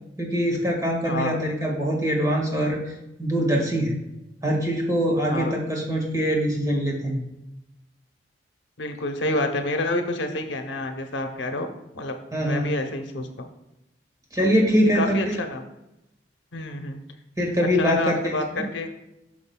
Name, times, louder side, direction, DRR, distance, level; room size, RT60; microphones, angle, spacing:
voice 1, 0.2-2.8 3.2-3.9 4.4-7.2 12.3-12.7 14.3-15.3 17.4-18.6, equal, 20° right, -1 dB, 1.7 m, -23 dB
voice 2, 1.0-1.4 5.3-5.6 8.8-11.7 11.9-12.2 12.4-13.5 14.4-14.5 14.8-15.6 16.5-17.0 17.6-18.9, left 2 dB, 75° left, 6 dB, 0.8 m, -28 dB
9.8 x 6.1 x 2.3 m, 0.90 s
head